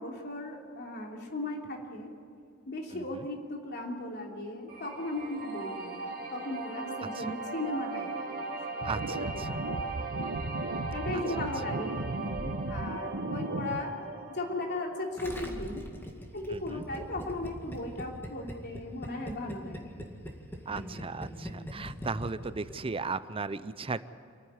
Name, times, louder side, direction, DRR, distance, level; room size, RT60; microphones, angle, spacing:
voice 1, 0.0-2.1 2.7-8.5 9.5-9.9 10.9-13.9 14.3-15.8 16.3-19.9 20.7-21.8, left 1 dB, 50° left, 0 dB, 3.1 m, -37 dB
voice 2, 2.9-3.3 7.1-7.3 8.8-9.6 11.1-11.5 16.5-16.8 20.7-24.1, right 4 dB, 25° right, 15 dB, 0.5 m, -37 dB
sound 1, 4.7-15.7, right 3 dB, 40° right, 3.0 m, -39 dB
sound 2, 8.8-13.8, right 2 dB, 65° right, 0.9 m, -36 dB
Gurgling, 15.2-22.8 23.0-23.1, equal, 10° left, 2.1 m, -41 dB
28.0 x 9.7 x 9.8 m, 2.3 s
head